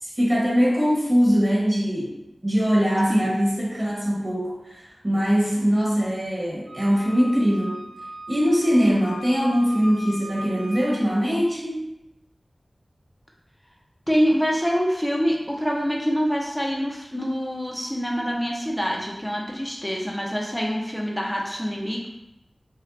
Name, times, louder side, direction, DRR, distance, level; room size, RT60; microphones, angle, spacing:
voice 1, 0.0-2.2 2.4-7.8 8.3-11.9, equal, 25° right, -5 dB, 1.4 m, -22 dB
Wind instrument woodwind instrument, 6.7-11.0, equal, 60° right, 1.1 m, -39 dB
voice 2, 14.1-22.1, equal, 5° left, -1 dB, 0.8 m, -25 dB
5.1 x 2.5 x 2.7 m, 0.88 s
wide cardioid pair, 50°, 0 cm